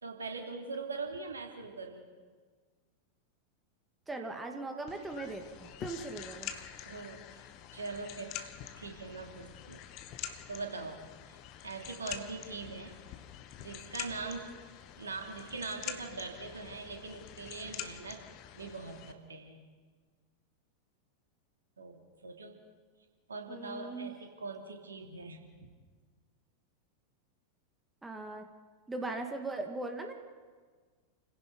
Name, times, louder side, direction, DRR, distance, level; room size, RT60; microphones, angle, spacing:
voice 1, 0.0-2.1 6.9-7.4 7.7-8.3 8.8-9.8 10.5-11.0 11.6-12.9 13.6-14.5 15.0-18.2 18.5-19.6 21.8-22.6 23.3-25.7, right 4 dB, 75° right, 3 dB, 2.9 m, -42 dB
voice 2, 4.1-6.5 23.5-24.1 28.0-28.5 28.9-30.1, right 2 dB, 10° right, 4 dB, 2.2 m, -39 dB
sound 1, 4.9-19.1, left 10 dB, 40° left, 1.3 m, -46 dB
29.5 x 16.5 x 5.4 m, 1.5 s
figure-of-eight pair, 90°, 0 cm